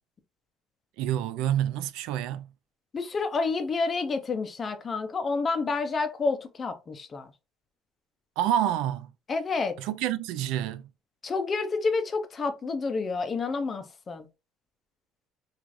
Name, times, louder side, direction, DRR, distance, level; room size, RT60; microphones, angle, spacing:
voice 1, 1.0-2.5 8.4-9.1 9.8-10.9, right 11 dB, 75° right, 0.4 m, -28 dB
voice 2, 2.9-7.3 9.3-9.8 11.2-14.3, left 4 dB, 20° left, 0.5 m, -29 dB
4.6 x 2.4 x 2.5 m
cardioid pair, 175°, 0 cm